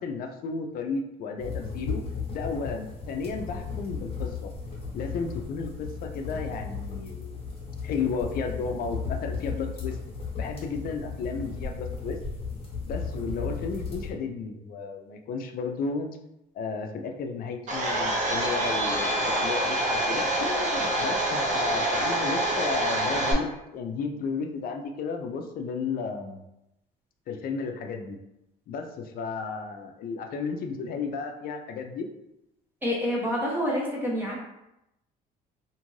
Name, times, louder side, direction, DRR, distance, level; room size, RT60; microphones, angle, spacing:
voice 1, 0.0-2.0 2.3-4.5 4.9-7.4 7.8-10.0 10.4-12.2 12.8-16.1 16.5-26.4 27.3-28.2 28.7-32.1, left 4 dB, 60° left, 4 dB, 0.4 m, -33 dB
sound 1, 1.4-14.1, left 5 dB, 35° left, 1.0 m, -35 dB
Domestic sounds home sounds, 17.7-23.3, right 1 dB, 45° right, 0.8 m, -26 dB
voice 2, 32.8-34.4, equal, 10° right, -4 dB, 0.9 m, -27 dB
2.6 x 2.4 x 3.1 m, 0.88 s
cardioid pair, 110°, 17 cm